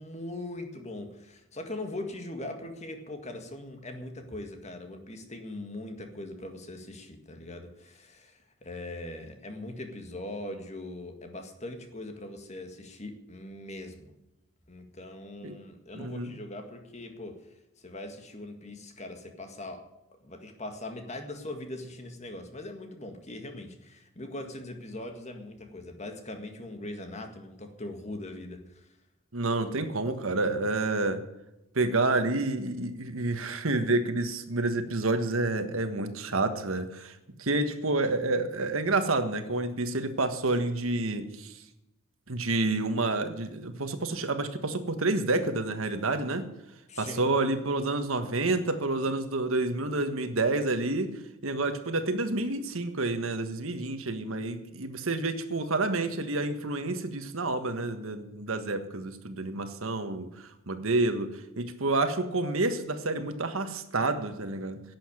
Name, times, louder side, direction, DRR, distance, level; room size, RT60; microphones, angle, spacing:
voice 1, 0.0-14.1 14.7-19.9 20.2-28.9 46.9-47.2, left 1 dB, 30° left, 5 dB, 1.8 m, -41 dB
voice 2, 15.9-16.3 29.3-31.2 31.7-41.6 42.3-46.5 47.0-51.1 51.4-64.8, right 2 dB, 75° right, 9 dB, 1.5 m, -29 dB
11.5 x 8.0 x 9.6 m, 0.90 s
head